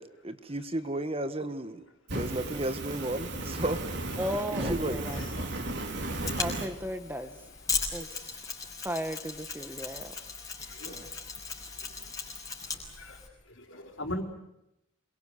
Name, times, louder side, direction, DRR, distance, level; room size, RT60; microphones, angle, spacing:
voice 1, 0.0-1.8 2.1-3.8 4.7-5.0 10.8-11.1, right 1 dB, 25° right, 10 dB, 1.5 m, -33 dB
Fire, 2.1-6.7, right 1 dB, 55° right, 4.4 m, -34 dB
voice 2, 4.2-5.5 6.4-7.4 7.9-8.4 8.8-10.2, equal, 10° right, 9 dB, 1.3 m, -36 dB
Mechanisms, 6.0-13.3, left 5 dB, 15° left, 5.6 m, -37 dB
voice 3, 10.7-11.0 13.0-13.2 13.6-14.2, left 1 dB, 60° left, 4 dB, 4.6 m, -39 dB
27.0 x 23.5 x 8.2 m, 0.85 s
head